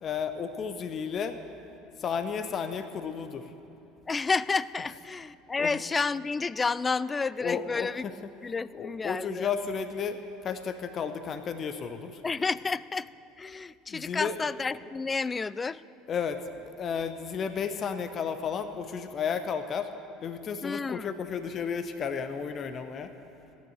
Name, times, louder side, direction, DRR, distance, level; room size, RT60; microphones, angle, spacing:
voice 1, 0.0-1.4 2.0-3.5 5.6-5.8 7.4-8.1 8.7-12.2 13.9-14.3 16.1-19.9 20.2-23.1, left 6 dB, 35° left, 9 dB, 0.8 m, -33 dB
voice 2, 4.1-8.0 8.4-9.5 12.2-13.1 13.4-15.8 20.6-21.1, left 4 dB, 20° left, 19 dB, 0.3 m, -30 dB
15.0 x 9.5 x 8.1 m, 2.8 s
figure-of-eight pair, 65°, 0 cm